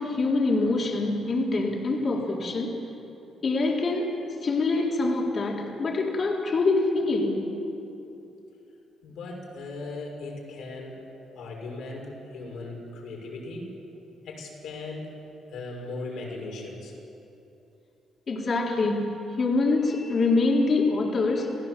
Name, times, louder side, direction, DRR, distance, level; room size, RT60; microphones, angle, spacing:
voice 1, 0.0-2.8 3.4-4.2 4.4-7.6 18.3-21.6, left 3 dB, 45° left, -1 dB, 3.7 m, -25 dB
voice 2, 9.0-11.0 11.4-13.7 14.2-15.2 15.5-16.9, left 2 dB, 75° left, 0 dB, 5.8 m, -38 dB
28.5 x 16.0 x 7.5 m, 2.9 s
cardioid pair, 90°, 0 cm